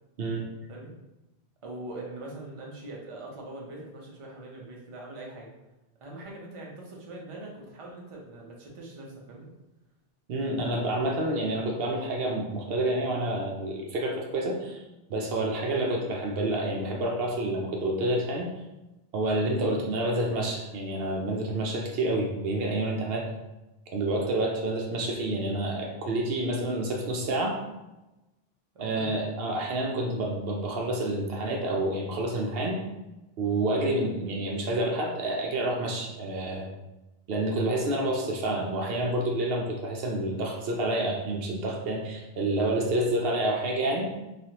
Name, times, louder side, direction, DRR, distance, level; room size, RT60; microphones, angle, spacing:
voice 1, 1.6-5.5 6.0-9.5 28.7-29.1, right 2 dB, 35° right, -2 dB, 0.6 m, -42 dB
voice 2, 10.3-14.8 15.1-18.5 19.1-23.3 23.9-27.6 28.8-32.8 33.4-36.7 37.3-44.1, right 1 dB, 70° right, 0 dB, 0.8 m, -28 dB
3.3 x 2.4 x 2.8 m, 0.99 s
omnidirectional pair, 1.1 m